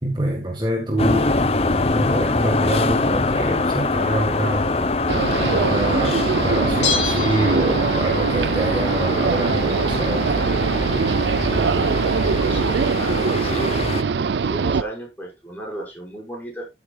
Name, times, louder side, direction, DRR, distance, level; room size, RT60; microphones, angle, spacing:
voice 1, 0.0-1.4 1.9-4.7 5.4-10.3, right 1 dB, 25° right, 1.6 m, -26 dB
sound 1, 1.0-14.0, left 3 dB, 35° left, 0.8 m, -24 dB
sound 2, 5.1-14.8, right 5 dB, 80° right, 0.4 m, -22 dB
Bell, 6.8-8.2 8.5-8.6, left 6 dB, 85° left, 2.6 m, -27 dB
voice 2, 11.7-13.7 14.4-16.6, right 1 dB, 10° left, 5.8 m, -34 dB
13.5 x 8.1 x 2.4 m
head